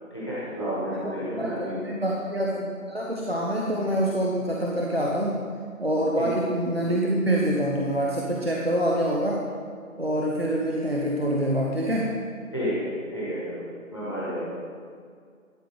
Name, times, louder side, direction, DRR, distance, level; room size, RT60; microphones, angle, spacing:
voice 1, 0.1-1.8 6.2-6.3 12.5-13.6 13.9-14.6, equal, 20° left, -10 dB, 1.8 m, -31 dB
voice 2, 1.0-5.4 5.8-9.4 10.0-12.1, right 1 dB, 45° right, -3 dB, 0.8 m, -26 dB
12.0 x 5.1 x 5.0 m, 2.1 s
figure-of-eight pair, 175°, 43 cm